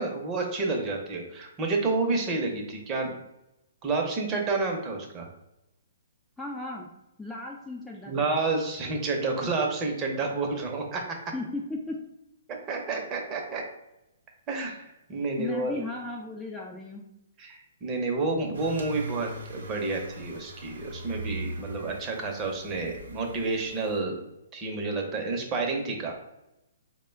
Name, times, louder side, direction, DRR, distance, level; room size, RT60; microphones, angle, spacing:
voice 1, 0.0-3.1 3.8-5.3 8.1-11.0 12.7-13.6 14.5-15.8 17.4-24.2 24.5-26.1, right 3 dB, 25° right, 1 dB, 0.7 m, -29 dB
voice 2, 6.4-6.9 7.2-8.3 11.3-12.0 15.4-17.1 22.0-22.1, left 2 dB, 5° left, -1 dB, 0.4 m, -36 dB
sound 1, 18.5-24.0, right 2 dB, 75° right, 0.7 m, -41 dB
3.5 x 2.2 x 3.4 m, 0.89 s
hypercardioid pair, 135°, 0 cm